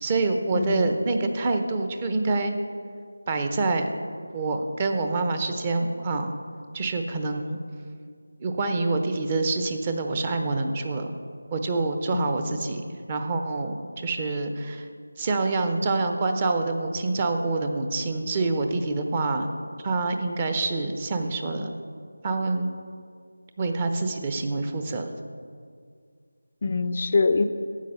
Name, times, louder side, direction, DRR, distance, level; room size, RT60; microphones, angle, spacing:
voice 1, 0.0-2.6 3.3-3.9 4.3-6.3 6.7-7.6 8.4-11.1 11.5-12.8 13.1-14.9 15.2-19.5 19.8-21.8 22.2-22.7 23.6-25.2, right 3 dB, 20° right, 6 dB, 0.7 m, -26 dB
voice 2, 0.5-1.0 12.1-12.6 26.6-27.5, left 4 dB, 35° left, 9 dB, 0.4 m, -25 dB
12.5 x 8.4 x 5.5 m, 2.1 s
figure-of-eight pair, 165°, 0 cm